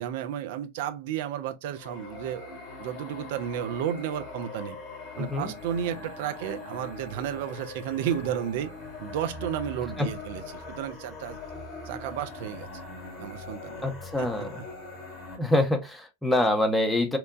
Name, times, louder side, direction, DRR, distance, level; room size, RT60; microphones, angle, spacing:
voice 1, 0.0-4.8 5.2-8.7 9.0-11.4 11.9-12.7 13.2-13.8 14.2-14.6, right 10 dB, 50° right, 0.3 m, -33 dB
sound 1, 1.7-15.4, left 3 dB, 25° left, 1.0 m, -41 dB
voice 2, 5.2-5.5 10.0-10.1 13.8-14.6 15.4-17.2, left 1 dB, 5° left, 0.6 m, -25 dB
2.9 x 2.1 x 2.5 m
figure-of-eight pair, 90°, 0 cm